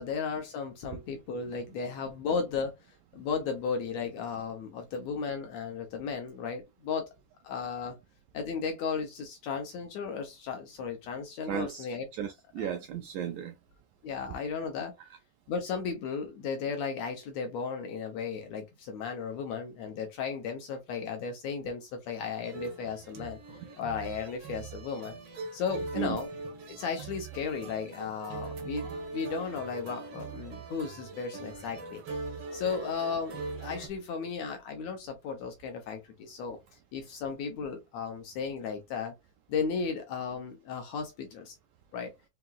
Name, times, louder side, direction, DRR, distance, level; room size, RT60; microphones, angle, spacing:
voice 1, 0.0-2.8 3.1-7.1 7.4-8.0 8.3-12.1 12.6-12.7 14.0-14.9 15.5-23.4 23.8-25.2 25.5-26.3 26.7-32.0 32.5-36.6 36.9-39.1 39.5-41.6 41.9-42.1, left 5 dB, 75° left, 1.6 m, -35 dB
voice 2, 11.5-11.9 12.1-13.5 26.0-26.2, right 9 dB, 85° right, 1.7 m, -34 dB
sound 1, 22.4-33.9, right 3 dB, 65° right, 1.3 m, -41 dB
5.6 x 3.0 x 2.2 m
omnidirectional pair, 4.0 m